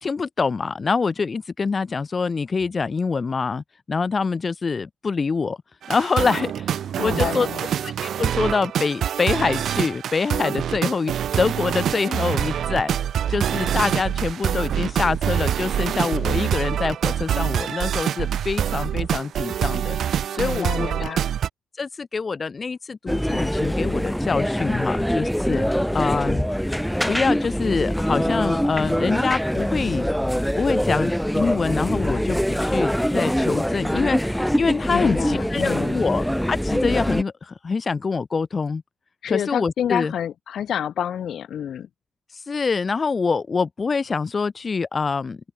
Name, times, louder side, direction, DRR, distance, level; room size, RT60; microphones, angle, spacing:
voice 1, 0.0-5.6 5.9-7.5 7.8-12.9 13.3-21.2 21.8-26.5 27.1-30.1 30.6-38.8 39.3-40.1 42.3-45.4, left 4 dB, 35° left, 1.4 m, -25 dB
sound 1, 5.8-21.5, right 9 dB, 65° right, 1.3 m, -25 dB
voice 2, 7.0-7.7 20.4-21.2 34.9-36.0 39.2-41.9, left 9 dB, 65° left, 1.3 m, -28 dB
sound 2, 23.1-37.2, equal, ahead, 1.4 m, -24 dB
open air
cardioid pair, 90°, 0 cm